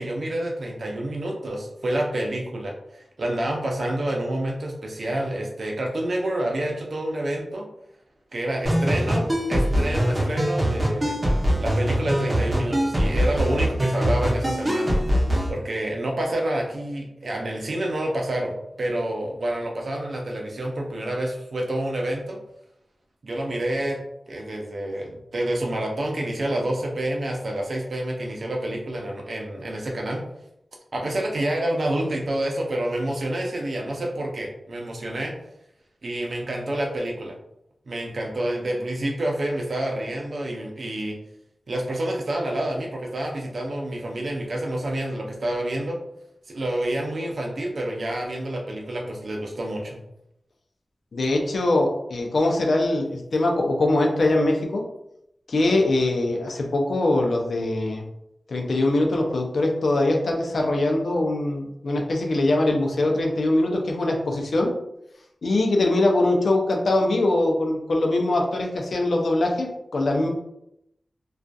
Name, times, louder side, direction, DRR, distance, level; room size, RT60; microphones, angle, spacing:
voice 1, 0.0-7.7 8.3-11.2 11.6-14.9 15.5-22.4 23.2-24.0 24.3-30.2 30.9-35.3 36.0-37.4 37.9-41.2 41.7-46.0 46.5-50.0, right 1 dB, 70° right, 0 dB, 0.6 m, -28 dB
sound 1, 8.6-15.5, equal, 35° right, 0.8 m, -23 dB
voice 2, 51.1-54.8 55.5-58.0 58.5-64.7 65.4-70.3, left 2 dB, 80° left, 1 dB, 0.5 m, -22 dB
2.5 x 2.3 x 2.3 m, 0.81 s
cardioid pair, 45°, 0 cm